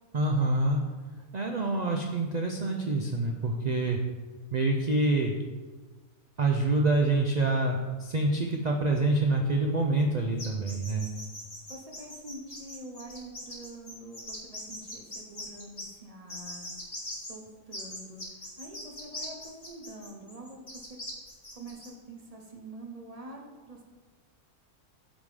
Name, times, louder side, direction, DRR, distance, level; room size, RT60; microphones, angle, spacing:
voice 1, 0.1-0.8 1.3-4.0 4.5-5.3 6.4-11.1, right 2 dB, 90° right, 1 dB, 0.3 m, -26 dB
sound 1, 10.4-15.9 16.3-17.3 17.7-21.9, left 1 dB, 25° left, 1.6 m, -41 dB
voice 2, 11.7-21.0 21.5-23.8, right 1 dB, 35° right, 0 dB, 0.7 m, -46 dB
8.8 x 3.7 x 4.9 m, 1.4 s
omnidirectional pair, 1.6 m